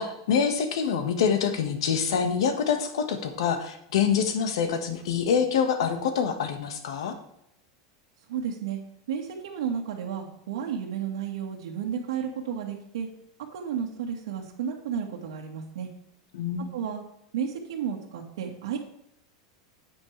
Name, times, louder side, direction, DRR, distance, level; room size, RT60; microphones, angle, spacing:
voice 1, 0.0-7.2 16.3-16.7, left 7 dB, 80° left, 7 dB, 1.6 m, -26 dB
voice 2, 8.3-8.8 9.1-13.1 13.5-15.9 16.7-17.0 17.3-18.8, right 8 dB, 90° right, -1 dB, 1.7 m, -32 dB
9.8 x 8.6 x 3.4 m, 0.78 s
supercardioid pair, 170°, 3 cm